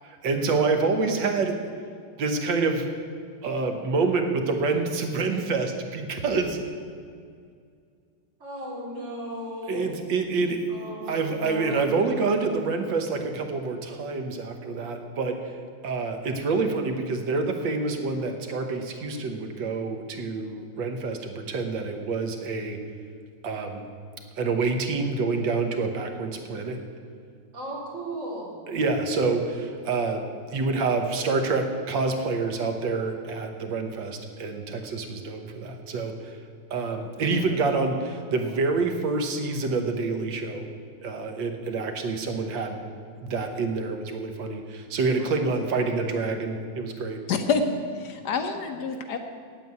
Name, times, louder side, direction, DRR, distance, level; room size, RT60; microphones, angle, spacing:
voice 1, 0.0-1.5 2.2-2.9 3.4-6.5 9.7-10.6 11.1-15.4 15.8-22.8 23.4-23.9 24.4-26.8 28.7-30.2 30.5-36.4 36.7-40.7 41.0-42.8 43.2-47.2, right 4 dB, 85° right, 5 dB, 1.8 m, -27 dB
voice 2, 8.4-9.9 10.7-12.2 27.5-28.5 45.2-46.0 48.2-48.8, right 1 dB, 40° right, -6 dB, 4.0 m, -37 dB
voice 3, 47.3-47.7 47.9-49.2, left 5 dB, 65° left, 6 dB, 1.4 m, -27 dB
9.0 x 8.4 x 9.3 m, 2.2 s
omnidirectional pair, 2.0 m